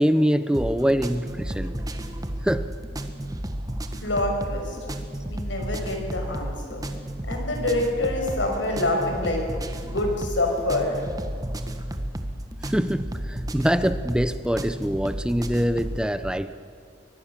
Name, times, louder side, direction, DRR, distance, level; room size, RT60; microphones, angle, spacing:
voice 1, 0.0-1.7 2.4-2.7 12.6-16.6, equal, 5° right, 12 dB, 0.6 m, -24 dB
sound 1, 0.5-16.0, right 1 dB, 20° right, 1.4 m, -32 dB
voice 2, 4.0-4.8 5.3-6.9 7.3-9.4 9.8-11.0, left 1 dB, 90° left, 2 dB, 5.8 m, -26 dB
23.5 x 19.5 x 7.2 m, 2.3 s
head